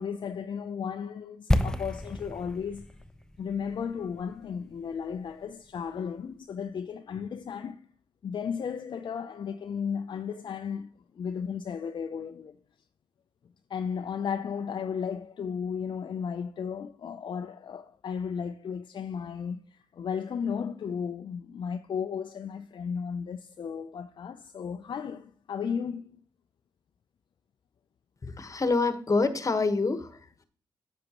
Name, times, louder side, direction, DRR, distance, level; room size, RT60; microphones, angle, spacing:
voice 1, 0.0-2.9 3.4-7.9 8.2-12.6 13.7-26.2, left 7 dB, 55° left, 0.5 m, -34 dB
sound 1, 1.5-5.4 5.7-5.8, left 1 dB, 5° left, 0.8 m, -31 dB
voice 2, 28.2-30.2, left 3 dB, 35° left, 1.2 m, -26 dB
9.4 x 7.2 x 2.9 m
supercardioid pair, 50°, 9 cm